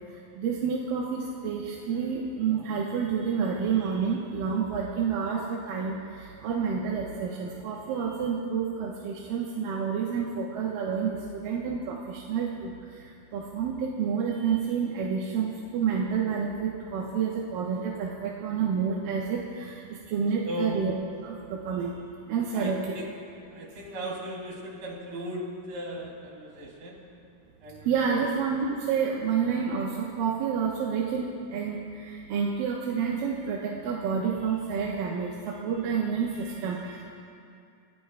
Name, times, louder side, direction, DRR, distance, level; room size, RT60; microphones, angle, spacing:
voice 1, 0.1-20.9 21.2-22.0 22.3-23.1 27.8-37.0, right 6 dB, 90° right, -4 dB, 2.8 m, -29 dB
voice 2, 20.4-20.8 22.5-23.1 23.5-27.0 27.6-28.3, equal, 70° right, -3 dB, 4.5 m, -37 dB
29.0 x 15.0 x 2.3 m, 2.4 s
omnidirectional pair, 3.9 m